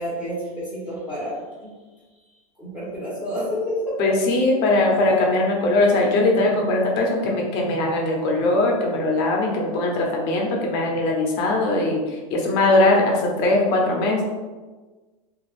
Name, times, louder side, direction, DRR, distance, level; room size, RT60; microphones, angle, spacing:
voice 1, 0.0-1.8 2.6-4.1, equal, 5° right, -9 dB, 0.9 m, -29 dB
voice 2, 4.0-14.3, left 2 dB, 50° left, 0 dB, 0.7 m, -20 dB
3.2 x 2.3 x 2.5 m, 1.3 s
supercardioid pair, 150°, 18 cm